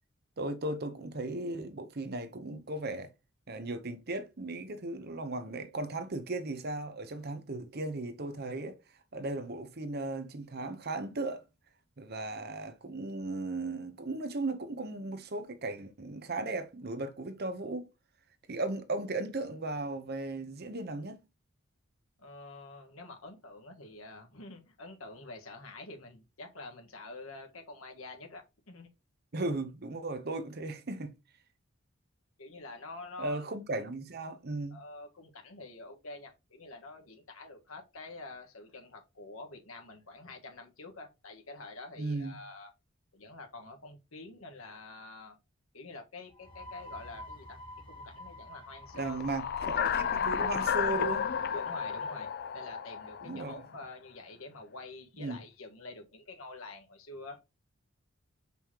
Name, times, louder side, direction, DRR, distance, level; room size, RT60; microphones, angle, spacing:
voice 1, 0.4-3.1 3.5-8.7 9.1-11.4 12.0-17.9 18.5-21.2 29.3-31.1 33.2-34.8 42.0-42.4 48.9-51.3 53.2-53.6 55.2-55.4, right 2 dB, 50° right, 0.9 m, -36 dB
voice 2, 22.2-28.9 32.4-33.4 34.7-42.7 43.1-45.4 45.7-47.6 47.9-49.4 51.5-57.4, left 2 dB, 85° left, 1.6 m, -47 dB
sound 1, 46.3-53.7, left 1 dB, 25° left, 1.3 m, -51 dB
sound 2, 49.0-53.7, left 7 dB, 50° left, 0.4 m, -32 dB
6.2 x 5.4 x 3.0 m
head